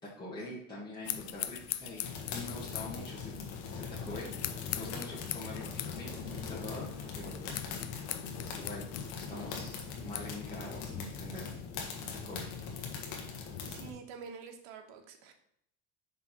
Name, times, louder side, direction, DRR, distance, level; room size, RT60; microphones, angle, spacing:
voice 1, 0.0-3.3 3.7-4.3 4.7-6.9 7.2-7.6 8.4-8.9 9.1-11.4 12.2-12.4, left 2 dB, 15° left, -7 dB, 1.8 m, -44 dB
sound 1, 1.0-10.4, left 13 dB, 45° left, 0.5 m, -43 dB
sound 2, 2.0-13.9, left 5 dB, 80° left, 1.5 m, -41 dB
voice 2, 13.6-15.3, right 6 dB, 80° right, 5 dB, 1.3 m, -47 dB
5.4 x 4.0 x 6.0 m, 0.72 s
supercardioid pair, 115°, 35 cm